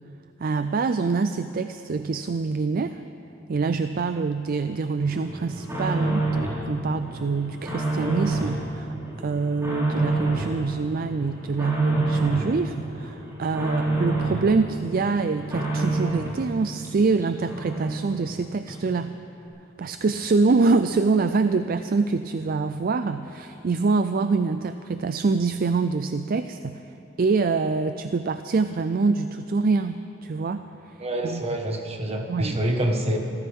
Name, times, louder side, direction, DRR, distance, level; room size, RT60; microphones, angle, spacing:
voice 1, 0.4-3.0 3.5-19.1 19.8-26.8 27.2-31.0 31.2-31.4 32.3-32.6, right 4 dB, 50° right, 10 dB, 0.4 m, -25 dB
sound 1, 5.0-6.6 7.0-8.6 8.9-10.6 10.9-12.5 12.9-14.5 14.8-16.4 16.8-16.9 17.2-17.3 17.5-18.3 18.7-18.8, right 2 dB, 15° right, 4.5 m, -28 dB
voice 2, 31.0-33.2, right 1 dB, 30° right, 2 dB, 1.5 m, -26 dB
26.0 x 14.5 x 3.6 m, 2.9 s
head